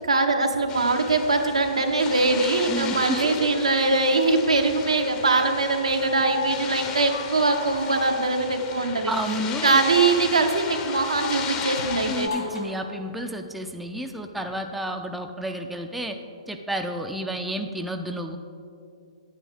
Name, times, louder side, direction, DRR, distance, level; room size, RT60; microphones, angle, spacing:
voice 1, 0.0-9.1 9.6-12.3, right 3 dB, 85° right, 4 dB, 0.9 m, -22 dB
sound 1, 0.7-12.3, left 6 dB, 25° left, 0.7 m, -35 dB
voice 2, 2.7-3.6 9.1-9.8 12.1-16.2 16.5-18.4, right 1 dB, 5° right, 4 dB, 0.4 m, -31 dB
sound 2, 6.0-8.5 10.4-12.8 14.5-14.6, left 4 dB, 70° left, 2.3 m, -35 dB
9.5 x 8.7 x 3.4 m, 2.5 s
figure-of-eight pair, 125°, 3 cm